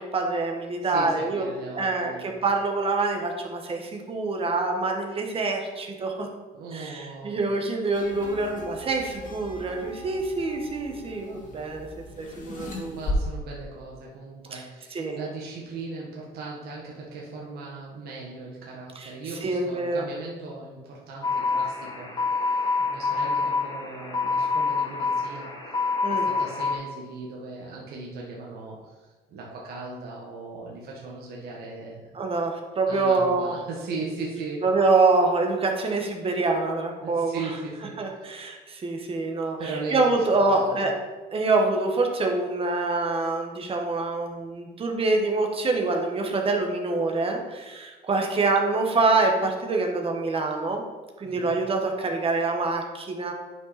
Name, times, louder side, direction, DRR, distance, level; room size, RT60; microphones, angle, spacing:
voice 1, 0.0-1.5 1.7-6.3 6.7-11.9 12.2-13.0 14.5-14.6 14.9-15.2 18.9-19.1 19.4-20.0 26.0-26.3 32.1-33.5 34.6-37.4 38.0-39.6 39.9-40.9 41.3-50.8 51.2-53.3, right 3 dB, 35° right, 2 dB, 1.5 m, -25 dB
voice 2, 0.8-2.3 6.5-7.4 12.8-25.5 26.1-32.2 32.9-34.6 37.0-38.1 39.6-40.3 40.5-40.9 51.2-51.6, right 3 dB, 65° right, -3 dB, 1.6 m, -38 dB
sound 1, 7.9-13.1, left 3 dB, 50° left, 2.1 m, -39 dB
sound 2, 21.2-26.8, left 4 dB, 25° left, 2.0 m, -26 dB
9.4 x 5.5 x 4.3 m, 1.3 s
cardioid pair, 110°, 17 cm